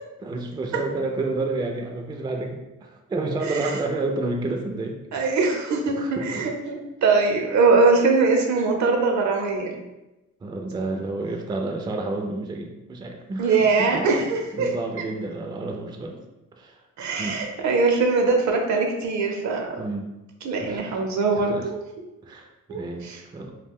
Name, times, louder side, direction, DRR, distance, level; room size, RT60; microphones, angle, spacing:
voice 1, 0.2-2.6 3.1-5.4 6.0-6.4 10.4-14.0 14.5-16.2 16.6-16.8 17.2-17.4 19.8-20.1 20.6-21.7 22.2-23.5, right 2 dB, 15° right, 2 dB, 0.3 m, -30 dB
voice 2, 3.4-3.8 5.1-9.8 13.4-14.7 17.0-19.8 20.4-21.8 22.7-23.2, right 4 dB, 70° right, 2 dB, 0.6 m, -22 dB
2.4 x 2.2 x 3.5 m, 1.0 s
cardioid pair, 90°, 30 cm